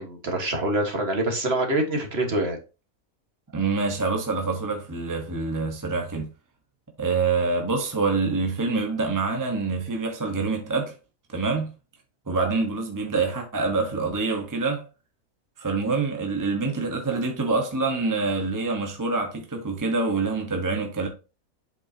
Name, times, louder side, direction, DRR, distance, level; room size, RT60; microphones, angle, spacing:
voice 1, 0.0-2.6, right 1 dB, 45° right, 1.8 m, -25 dB
voice 2, 3.5-6.3 7.0-10.9 11.3-11.7 12.3-14.8 15.6-21.1, right 4 dB, 15° right, 1.1 m, -26 dB
8.0 x 5.8 x 2.8 m
omnidirectional pair, 1.5 m